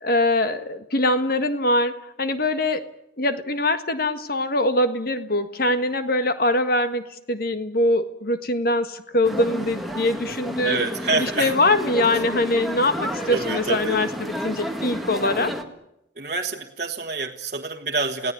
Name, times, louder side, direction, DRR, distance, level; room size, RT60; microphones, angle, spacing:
voice 1, 0.0-2.8 3.2-10.8 11.1-15.5, left 1 dB, 55° left, 9 dB, 1.6 m, -23 dB
sound 1, 9.2-15.6, equal, ahead, 1.8 m, -31 dB
voice 2, 10.6-11.5 13.3-14.1 16.2-18.3, right 3 dB, 45° right, -1 dB, 1.4 m, -27 dB
29.0 x 17.5 x 9.5 m, 0.87 s
head